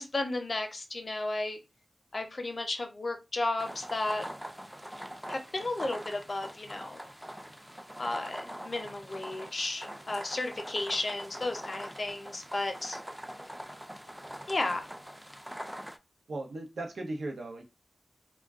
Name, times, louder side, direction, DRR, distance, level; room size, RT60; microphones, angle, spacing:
voice 1, 0.0-1.6 2.1-4.3 5.3-7.0 8.0-13.0 14.5-14.9, left 2 dB, 50° left, 0.6 m, -33 dB
sound 1, 3.6-16.0, equal, 5° right, 0.3 m, -43 dB
voice 2, 16.3-17.6, right 2 dB, 90° right, 0.7 m, -37 dB
2.3 x 2.1 x 3.5 m
wide cardioid pair, 65°, 0 cm